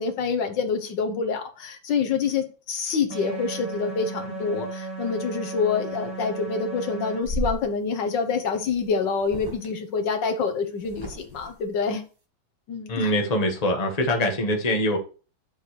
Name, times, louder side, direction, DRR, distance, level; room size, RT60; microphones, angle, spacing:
voice 1, 0.0-12.0 12.7-13.1, left 5 dB, 70° left, 6 dB, 1.6 m, -27 dB
sound 1, 3.1-7.2, right 3 dB, 70° right, 3.2 m, -35 dB
sound 2, 7.2-7.6 8.7-8.9 9.2-9.7 10.8-11.5, right 1 dB, 15° right, 1.2 m, -33 dB
voice 2, 12.9-15.0, left 1 dB, 20° left, 2 dB, 1.4 m, -23 dB
11.0 x 6.5 x 3.2 m, 0.37 s
omnidirectional pair, 2.1 m